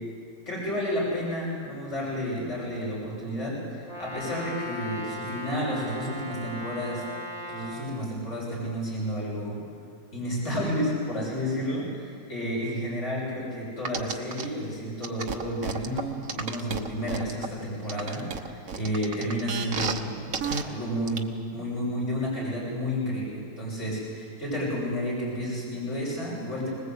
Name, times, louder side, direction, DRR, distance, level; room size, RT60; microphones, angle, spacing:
voice 1, 0.5-7.0 7.5-9.6 10.1-20.3 20.6-26.7, equal, 45° left, -6 dB, 7.4 m, -31 dB
Brass instrument, 3.8-7.8, equal, ahead, 6.5 m, -37 dB
sound 1, 13.8-14.4 15.0-17.5 17.9-20.0 20.3-20.6 21.1-21.2, right 5 dB, 55° right, 1.5 m, -31 dB
25.5 x 20.0 x 8.2 m, 2.2 s
omnidirectional pair, 1.7 m